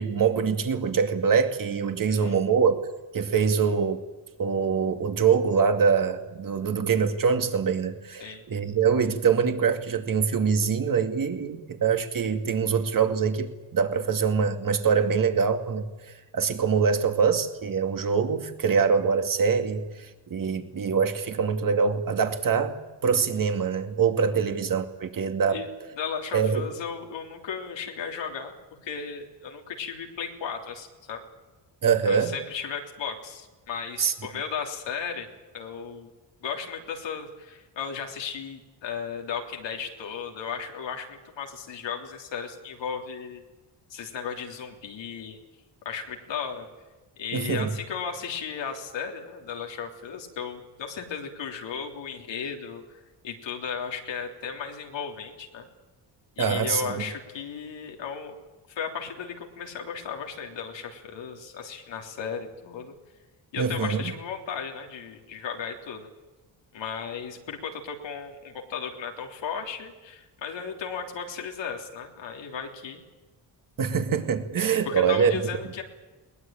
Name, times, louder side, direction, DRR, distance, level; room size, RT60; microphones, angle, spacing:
voice 1, 0.0-2.8 3.1-4.0 4.4-22.8 23.0-25.6 26.3-26.7 31.8-32.3 34.0-34.1 47.3-47.7 56.4-57.0 63.6-64.1 73.8-75.4, right 6 dB, 50° right, 6 dB, 2.4 m, -24 dB
voice 2, 26.0-28.6 28.8-31.2 32.1-35.3 35.5-36.1 36.4-43.4 43.9-45.4 45.8-46.7 47.2-55.7 56.4-58.3 58.7-62.9 63.5-66.1 66.7-73.0 74.8-75.8, left 6 dB, 80° left, 2 dB, 3.4 m, -35 dB
21.5 x 20.0 x 8.9 m, 1.2 s
cardioid pair, 130°, 43 cm